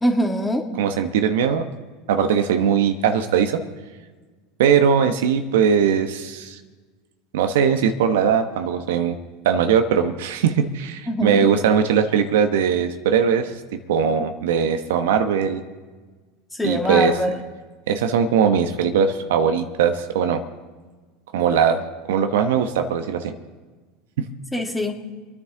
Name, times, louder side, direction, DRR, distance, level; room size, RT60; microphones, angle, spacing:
voice 1, 0.0-0.7 11.1-11.5 16.5-17.3 24.5-25.0, equal, 10° left, 2 dB, 2.2 m, -23 dB
voice 2, 0.8-1.7 2.1-3.6 4.6-6.6 7.3-9.2 9.4-13.5 13.9-15.6 16.6-17.1 17.9-20.4 21.3-23.3, right 7 dB, 75° right, 8 dB, 1.0 m, -20 dB
28.5 x 9.8 x 3.8 m, 1.4 s
hypercardioid pair, 95°, 0 cm